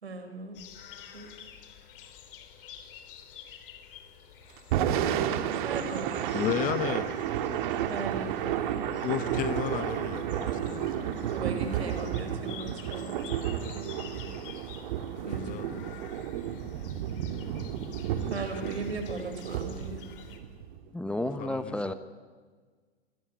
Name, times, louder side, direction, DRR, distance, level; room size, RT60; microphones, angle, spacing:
voice 1, 0.0-0.6 1.1-1.3 5.5-6.3 7.9-8.4 11.3-14.3 15.3-15.8 18.3-20.0, right 3 dB, 70° right, 5.4 m, -38 dB
sound 1, 0.5-20.4, left 9 dB, 50° left, 3.8 m, -50 dB
Thunder / Rain, 4.6-20.8, right 10 dB, 45° right, 2.1 m, -32 dB
voice 2, 6.3-7.1 9.0-11.1 15.2-15.7 18.1-18.7 21.4-21.9, left 13 dB, 25° left, 1.0 m, -34 dB
voice 3, 20.9-21.9, left 1 dB, 5° left, 1.0 m, -31 dB
28.0 x 20.0 x 9.7 m
figure-of-eight pair, 100°, 34 cm